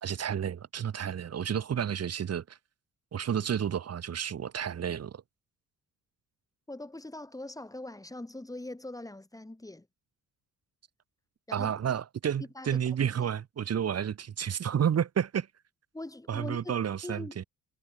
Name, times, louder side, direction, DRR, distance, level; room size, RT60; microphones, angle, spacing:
voice 1, 0.0-2.6 3.1-5.2 11.5-15.5 16.3-17.4, right 8 dB, 55° right, 3.6 m, -31 dB
voice 2, 6.7-9.9 11.5-11.8 12.6-12.8 15.9-17.4, left 1 dB, 10° left, 6.8 m, -42 dB
cardioid pair, 90°, 30 cm